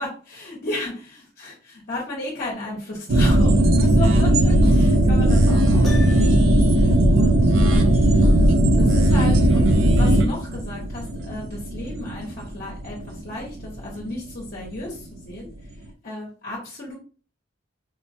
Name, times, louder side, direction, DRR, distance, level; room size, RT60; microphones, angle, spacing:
voice 1, 0.0-8.0 8.7-15.5 16.0-16.9, left 2 dB, 50° left, -4 dB, 0.9 m, -34 dB
sound 1, 3.1-14.0 14.3-14.4, right 1 dB, 70° right, 0.5 m, -17 dB
Piano, 5.8-6.7, left 3 dB, ahead, 0.7 m, -37 dB
4.4 x 2.1 x 2.6 m, 0.39 s
head